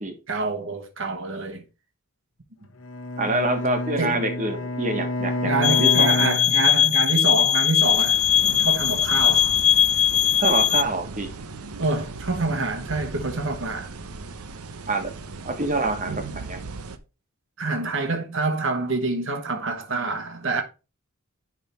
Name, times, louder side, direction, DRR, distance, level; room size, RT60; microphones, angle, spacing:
voice 1, 0.3-1.6 4.0-4.2 5.4-8.2 8.6-9.5 11.8-14.0 17.6-20.6, right 3 dB, 60° right, 1.2 m, -27 dB
Bowed string instrument, 2.8-7.2, left 2 dB, 70° left, 1.4 m, -29 dB
voice 2, 3.2-6.3 10.4-11.3 14.9-15.1 15.4-16.6, right 2 dB, 35° right, 1.4 m, -26 dB
sound 1, 5.6-10.8, left 9 dB, 30° left, 0.3 m, -20 dB
sound 2, 7.8-17.0, right 3 dB, 90° right, 0.8 m, -37 dB
10.5 x 3.7 x 4.4 m
head